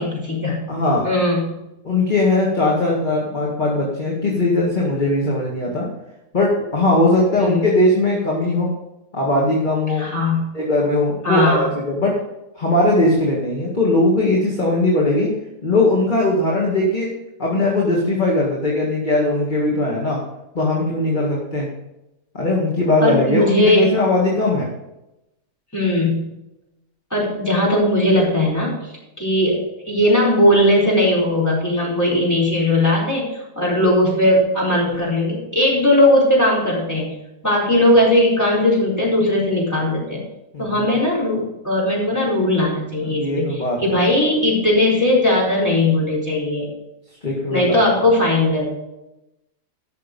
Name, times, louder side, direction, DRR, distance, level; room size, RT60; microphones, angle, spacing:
voice 1, 0.0-0.6 1.0-1.6 7.4-7.7 10.0-10.4 11.2-11.7 23.0-23.9 25.7-26.3 27.1-37.1 37.4-40.2 40.6-46.7 47.5-48.6, left 1 dB, 10° left, -6 dB, 4.4 m, -18 dB
voice 2, 0.7-1.1 1.8-5.9 6.3-8.7 9.1-10.1 10.5-12.2 12.6-15.3 15.6-17.1 17.4-20.2 20.5-21.7 22.3-24.7 40.5-40.9 43.0-44.0 47.2-47.9, left 2 dB, 30° left, -3 dB, 2.1 m, -19 dB
12.5 x 6.5 x 5.4 m, 0.91 s
omnidirectional pair, 1.7 m